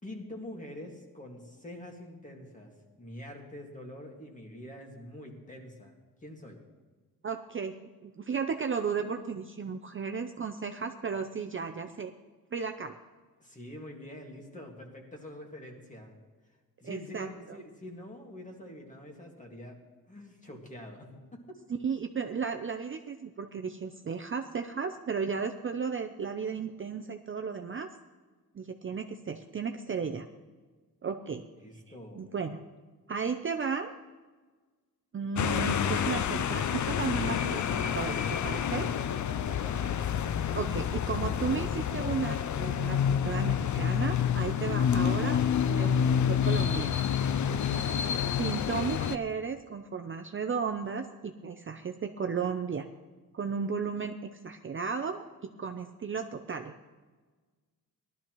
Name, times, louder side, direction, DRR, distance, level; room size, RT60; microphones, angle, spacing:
voice 1, 0.0-2.7 3.0-6.0 6.2-6.6 13.4-16.1 16.8-19.8 20.1-21.6 31.5-32.3 39.3-39.9 47.4-48.1, left 1 dB, 20° left, 1 dB, 1.9 m, -45 dB
voice 2, 7.2-12.1 12.5-13.0 16.8-17.6 21.8-27.9 28.5-30.3 31.0-31.4 32.2-32.6 33.1-33.9 35.1-38.9 40.5-45.4 45.7-47.0 48.4-52.9 53.3-56.7, right 5 dB, 35° right, 5 dB, 0.5 m, -34 dB
sound 1, 35.4-49.2, left 8 dB, 50° left, 0.5 m, -28 dB
19.0 x 12.5 x 3.0 m, 1.4 s
wide cardioid pair, 165°, 37 cm